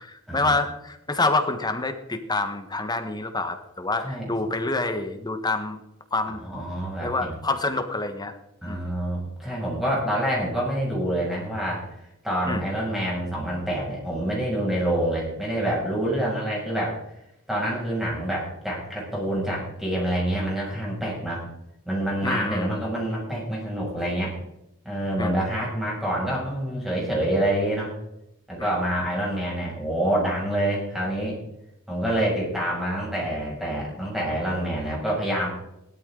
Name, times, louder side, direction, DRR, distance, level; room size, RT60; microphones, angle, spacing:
voice 1, 0.0-5.8 6.1-6.4 7.0-8.3 8.7-8.9 12.5-12.7 22.2-22.8 25.2-25.4 28.6-28.7, left 2 dB, 20° left, 7 dB, 1.3 m, -27 dB
voice 2, 4.0-4.3 6.4-7.3 8.6-17.0 17.5-21.4 21.8-24.3 24.8-27.9 28.5-31.4 31.9-35.5, right 1 dB, ahead, -5 dB, 6.5 m, -27 dB
17.0 x 12.5 x 3.9 m, 0.85 s
head